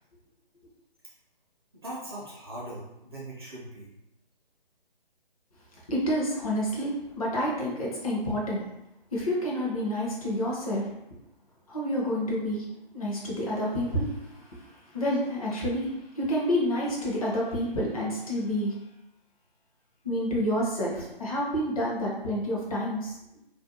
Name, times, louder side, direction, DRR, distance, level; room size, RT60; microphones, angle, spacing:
voice 1, 1.8-3.9, right 1 dB, 25° right, -7 dB, 0.4 m, -40 dB
voice 2, 5.9-8.6 9.1-10.9 11.7-12.6 12.9-18.8 20.0-23.4, equal, 40° left, -4 dB, 0.6 m, -29 dB
2.4 x 2.1 x 2.6 m, 0.88 s
figure-of-eight pair, 145°, 29 cm